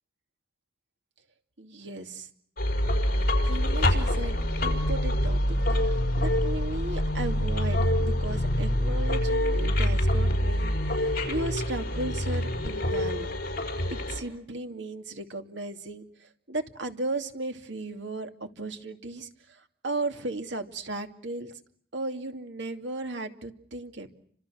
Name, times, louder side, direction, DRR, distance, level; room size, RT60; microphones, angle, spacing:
voice 1, 1.6-2.3 3.4-13.3 13.9-21.5 21.9-24.1, right 2 dB, 70° right, 6 dB, 2.6 m, -36 dB
sound 1, 2.6-14.2, left 1 dB, 55° left, 5.4 m, -26 dB
29.5 x 26.5 x 6.4 m, 0.63 s
head